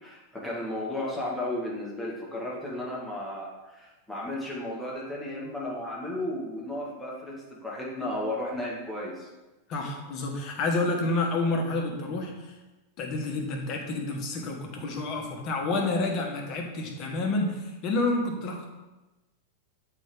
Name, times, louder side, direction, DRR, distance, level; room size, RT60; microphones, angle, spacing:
voice 1, 0.0-9.3, left 1 dB, 5° left, -5 dB, 2.0 m, -34 dB
voice 2, 9.7-12.6 13.0-18.7, left 2 dB, 40° left, 1 dB, 1.3 m, -29 dB
7.5 x 4.7 x 3.8 m, 1.1 s
figure-of-eight pair, 90°, 0 cm